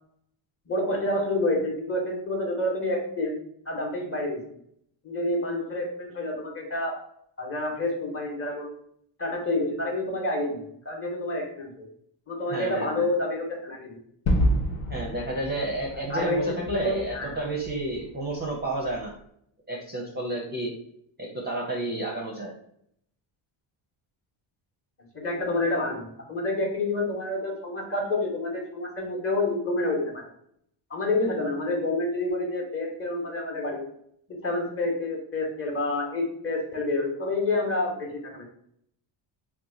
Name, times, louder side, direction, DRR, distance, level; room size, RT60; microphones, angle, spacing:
voice 1, 0.7-3.4 3.7-4.4 5.0-7.0 7.4-8.7 9.2-11.9 12.3-14.0 16.1-17.4 25.1-30.3 30.9-33.9 34.3-38.4, left 2 dB, 25° left, 0 dB, 0.9 m, -28 dB
voice 2, 12.5-13.0 14.9-19.1 19.7-20.7 21.2-22.5, right 1 dB, 20° right, -2 dB, 0.5 m, -31 dB
Gunshot gunfire / Fireworks / Boom, 14.3-19.1, equal, 80° left, 0.9 m, -29 dB
2.8 x 2.3 x 3.7 m, 0.70 s
cardioid pair, 115°, 50 cm